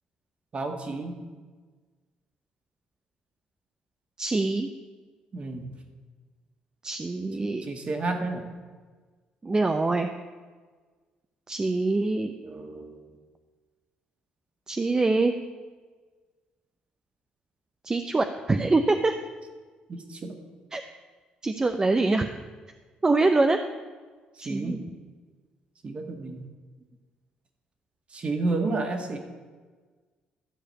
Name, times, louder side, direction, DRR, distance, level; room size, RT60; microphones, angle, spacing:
voice 1, 0.5-1.2 5.3-5.7 7.4-8.5 12.4-13.0 14.9-15.0 19.9-20.4 24.4-24.8 25.8-26.5 28.1-29.2, right 3 dB, 40° right, 4 dB, 2.0 m, -31 dB
voice 2, 4.2-4.7 6.8-7.6 9.4-10.1 11.5-12.3 14.7-15.3 17.8-19.1 20.7-20.8 21.4-22.3 23.0-23.6 24.4-24.8, right 3 dB, 25° right, 6 dB, 0.7 m, -24 dB
13.0 x 4.9 x 8.4 m, 1.4 s
supercardioid pair, 75°, 3 cm